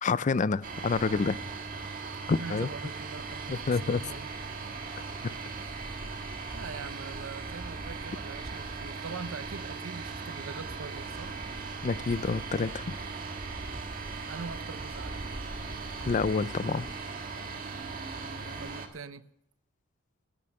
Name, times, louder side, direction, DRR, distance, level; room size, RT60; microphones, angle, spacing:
voice 1, 0.0-1.4 2.3-2.7 3.5-4.0 11.8-12.9 16.1-16.9, left 4 dB, 40° left, 18 dB, 0.4 m, -28 dB
sound 1, 0.6-18.9, right 4 dB, 45° right, 1.6 m, -38 dB
voice 2, 2.2-4.3 5.6-5.8 6.5-11.3 14.2-15.3 18.6-19.2, right 4 dB, 90° right, 13 dB, 0.7 m, -43 dB
15.5 x 9.2 x 6.5 m, 0.75 s
head